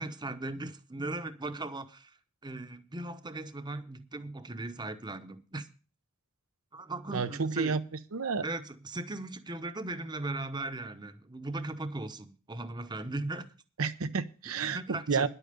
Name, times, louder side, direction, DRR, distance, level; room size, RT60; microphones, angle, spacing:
voice 1, 0.0-2.2 2.4-5.7 6.7-7.8 8.4-13.5 14.6-15.3, right 2 dB, 20° right, 0.9 m, -38 dB
voice 2, 7.1-7.8 8.1-8.4 13.8-15.3, right 5 dB, 80° right, 0.8 m, -30 dB
10.5 x 8.7 x 6.7 m
head